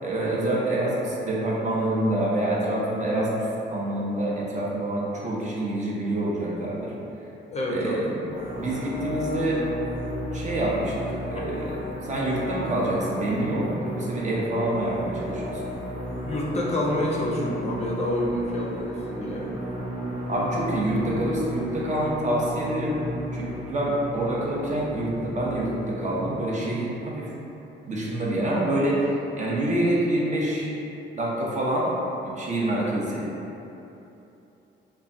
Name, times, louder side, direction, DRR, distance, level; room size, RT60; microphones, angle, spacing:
voice 1, 0.0-3.4 3.7-6.9 7.7-8.0 8.6-9.6 10.3-11.8 12.1-15.6 20.3-23.0 23.3-27.3 27.9-30.7 31.2-31.9 32.2-33.3, right 1 dB, 40° right, -5 dB, 0.6 m, -26 dB
voice 2, 7.5-8.3 16.3-19.5 32.8-33.0, left 1 dB, 35° left, -3 dB, 0.4 m, -28 dB
sound 1, 8.3-26.3, right 1 dB, 75° right, 0.8 m, -34 dB
3.0 x 2.1 x 2.5 m, 3.0 s
cardioid pair, 90°, 20 cm